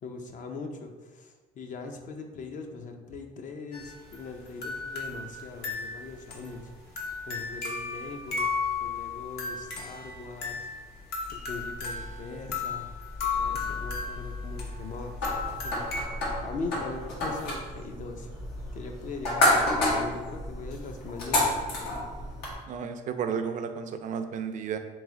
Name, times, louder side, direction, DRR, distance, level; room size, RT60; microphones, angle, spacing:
voice 1, 0.0-6.7 7.3-8.5 8.8-10.7 11.3-12.9 13.4-15.1 15.6-15.8 16.4-18.3 18.7-21.9, left 4 dB, 50° left, 4 dB, 0.5 m, -40 dB
sound 1, 3.7-16.0, left 4 dB, 65° left, 0.9 m, -35 dB
sound 2, 15.2-22.5, left 1 dB, 85° left, 1.2 m, -29 dB
voice 2, 22.7-24.8, right 7 dB, 50° right, 8 dB, 0.4 m, -32 dB
3.2 x 3.1 x 3.6 m, 1.3 s
cardioid pair, 110°, 17 cm